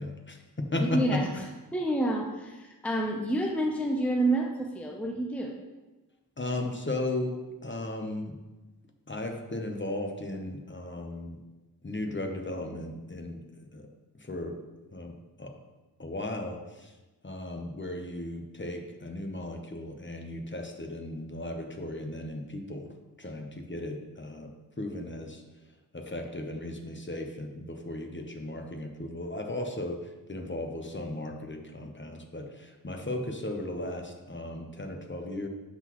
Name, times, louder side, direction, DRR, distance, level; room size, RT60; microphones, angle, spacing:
voice 1, 0.0-1.2 6.4-8.4 9.1-11.4 11.8-13.4 13.7-13.9 14.2-14.6 14.9-15.5 16.0-16.9 17.2-24.5 24.8-25.4 25.9-35.5, left 1 dB, 30° left, 3 dB, 0.9 m, -36 dB
voice 2, 0.8-1.5 1.7-5.5, right 1 dB, 5° left, 1 dB, 0.7 m, -28 dB
11.5 x 4.0 x 3.0 m, 1.1 s
wide cardioid pair, 55°, 38 cm